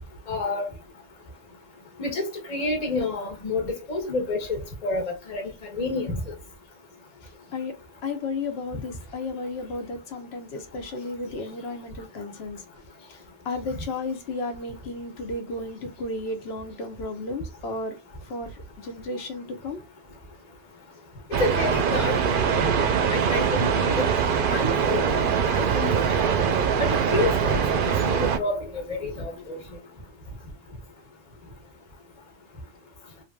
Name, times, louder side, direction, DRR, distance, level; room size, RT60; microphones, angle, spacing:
voice 1, 0.3-0.7 2.0-5.4 5.7-6.2 21.4-22.1 23.1-24.0 24.5-25.0 25.4-25.9 26.2-26.3 26.8-29.6, left 2 dB, 40° left, 1.0 m, -29 dB
voice 2, 8.0-12.6 13.4-18.0 18.3-18.5 18.8-19.8, left 3 dB, 70° left, 1.1 m, -33 dB
sound 1, 21.3-28.4, right 7 dB, 60° right, 0.7 m, -23 dB
3.2 x 2.6 x 2.2 m
omnidirectional pair, 1.1 m